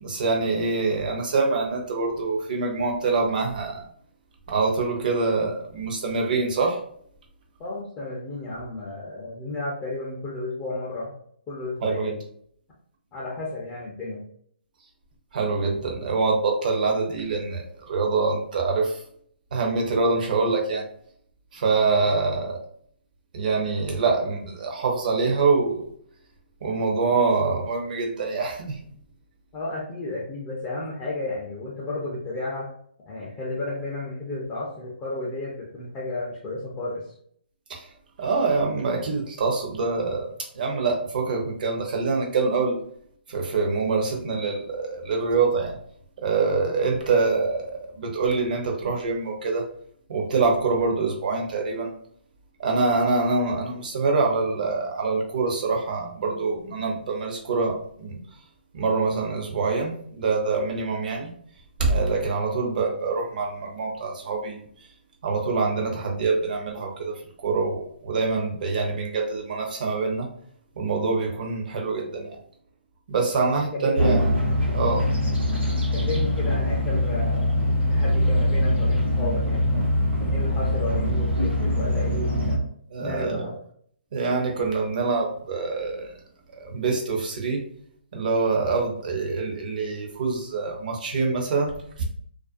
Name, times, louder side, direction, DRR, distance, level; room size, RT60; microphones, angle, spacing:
voice 1, 0.0-3.8 4.5-6.8 11.8-12.1 15.3-19.0 19.5-20.8 21.5-22.6 23.3-25.8 26.6-28.8 37.7-37.9 38.2-42.8 43.3-45.8 46.2-49.7 50.1-51.9 52.6-58.2 58.7-61.3 61.8-64.6 65.2-70.3 70.8-72.4 73.1-74.4 74.7-75.1 82.9-83.5 84.1-86.1 86.5-87.6 88.1-92.0, right 4 dB, 50° right, 0 dB, 0.7 m, -25 dB
voice 2, 7.6-11.1 11.5-12.2 13.1-14.2 29.5-32.7 33.1-37.1 73.3-74.0 75.9-77.6 77.9-79.9 80.2-82.7 83.0-83.6, left 2 dB, 20° left, -6 dB, 0.5 m, -32 dB
sound 1, 74.0-82.6, left 1 dB, 85° right, 0.9 m, -23 dB
2.4 x 2.1 x 2.5 m, 0.63 s
figure-of-eight pair, 145°, 6 cm